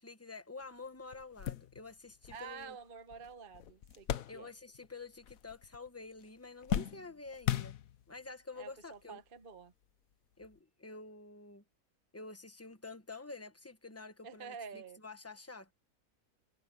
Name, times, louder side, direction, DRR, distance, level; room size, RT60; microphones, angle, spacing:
voice 1, 0.0-2.8 4.3-7.8 8.1-9.2 10.4-11.6 12.1-15.7, left 3 dB, 10° left, 1.1 m, -49 dB
sound 1, 0.6-0.7 1.1-4.9 5.2-5.9 6.2-8.3 9.0-9.1 10.4-10.6, left 10 dB, 70° left, 1.2 m, -39 dB
voice 2, 2.3-4.5 8.6-9.7 14.2-15.0, right 6 dB, 40° right, 1.1 m, -48 dB
omnidirectional pair, 1.6 m